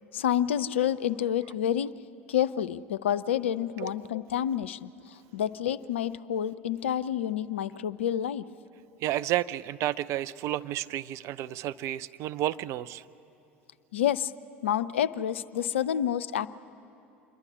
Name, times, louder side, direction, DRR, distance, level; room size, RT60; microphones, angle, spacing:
voice 1, 0.1-1.9 2.3-4.9 5.3-8.4 13.9-14.3 14.6-16.5, left 10 dB, 75° left, 14 dB, 0.4 m, -28 dB
voice 2, 9.0-13.0, right 13 dB, 50° right, 13 dB, 0.4 m, -31 dB
27.0 x 11.0 x 9.8 m, 2.8 s
figure-of-eight pair, 70°, 7 cm